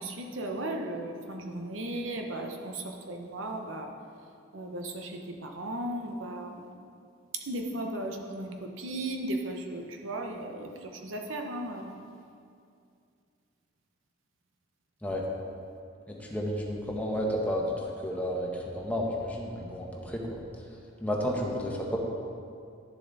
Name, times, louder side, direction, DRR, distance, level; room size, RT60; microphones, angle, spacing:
voice 1, 0.0-3.9 4.5-6.7 7.5-12.0, right 1 dB, 80° right, 3 dB, 1.0 m, -36 dB
voice 2, 16.1-17.7 18.0-20.4 21.0-22.0, equal, 10° left, -2 dB, 1.2 m, -31 dB
11.0 x 7.0 x 4.1 m, 2.4 s
head